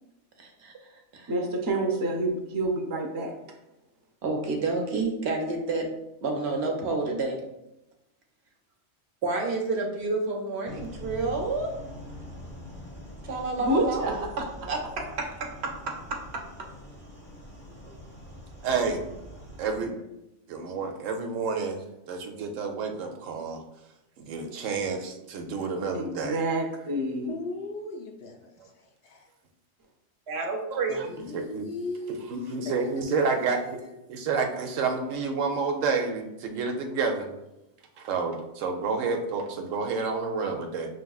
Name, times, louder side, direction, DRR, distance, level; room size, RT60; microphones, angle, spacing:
voice 1, 0.4-0.7 1.1-1.3 4.2-5.9 6.2-7.4 9.2-11.8 13.2-15.3 15.6-16.4 30.3-31.0, right 3 dB, 60° right, 2 dB, 1.0 m, -29 dB
voice 2, 1.3-3.3 13.6-14.4 25.9-27.4, right 1 dB, 30° right, 1 dB, 0.3 m, -28 dB
sound 1, 10.7-19.8, equal, 10° left, 0.7 m, -44 dB
voice 3, 18.6-19.0 19.6-19.9 20.5-23.6 24.2-26.4 30.7-31.1 31.3-31.6 32.3-33.8 34.1-37.3 38.0-40.9, right 4 dB, 90° right, 4 dB, 1.0 m, -29 dB
voice 4, 27.3-29.3 30.9-34.0, left 3 dB, 65° left, 1 dB, 0.7 m, -39 dB
5.6 x 3.2 x 2.3 m, 0.90 s
omnidirectional pair, 1.3 m